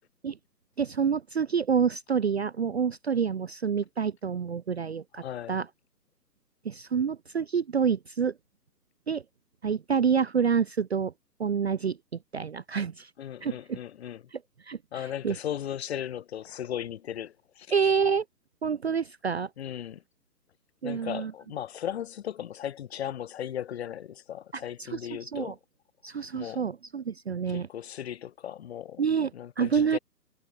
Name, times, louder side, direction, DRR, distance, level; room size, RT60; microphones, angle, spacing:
voice 1, 0.8-5.7 6.6-8.3 9.1-9.2 9.6-11.1 11.4-12.0 12.3-13.1 13.4-13.8 14.7-14.8 15.2-15.4 17.7-18.2 18.6-19.5 20.8-21.3 24.9-25.0 25.3-25.5 26.0-27.7 29.0-29.3 29.6-30.0, right 6 dB, 40° right, 0.6 m, -27 dB
voice 2, 5.1-5.6 13.2-14.2 14.9-17.9 19.6-20.0 20.8-25.6 26.3-26.6 27.5-29.0 29.3-30.0, left 10 dB, 40° left, 4.2 m, -37 dB
hypercardioid pair, 160°, 49 cm